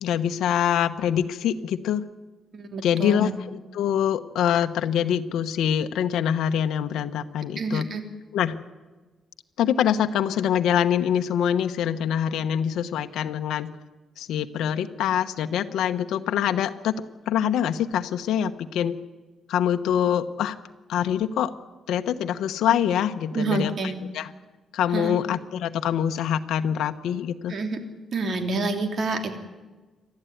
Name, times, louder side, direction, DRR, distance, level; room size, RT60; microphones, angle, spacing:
voice 1, 0.0-2.1 2.8-7.9 8.3-8.6 9.6-13.7 14.2-16.9 17.3-18.9 19.5-20.6 20.9-21.5 21.9-24.3 24.7-27.5, left 9 dB, 85° left, 8 dB, 1.1 m, -25 dB
voice 2, 2.5-3.3 7.6-8.0 23.3-23.9 24.9-25.2 27.5-27.8 28.1-29.3, right 3 dB, 50° right, 5 dB, 3.1 m, -28 dB
28.0 x 12.5 x 9.3 m, 1.2 s
cardioid pair, 115°, 0 cm